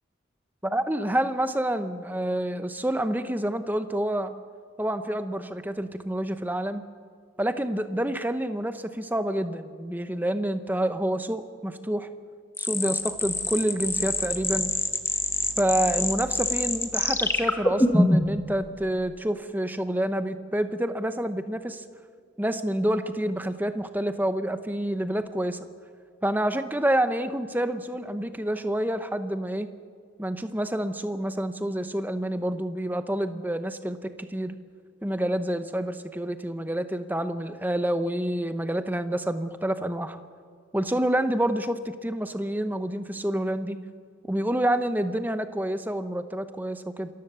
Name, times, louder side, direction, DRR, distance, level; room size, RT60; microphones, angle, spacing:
voice 1, 0.6-4.3 4.8-6.8 7.4-12.1 12.6-14.7 15.6-21.8 22.4-25.6 26.2-29.7 30.2-34.5 35.0-40.2 40.7-43.8 44.3-47.1, right 1 dB, 10° right, 10 dB, 0.8 m, -28 dB
sound 1, 12.6-18.4, left 2 dB, 10° left, 1.2 m, -25 dB
27.0 x 14.5 x 6.9 m, 2.1 s
head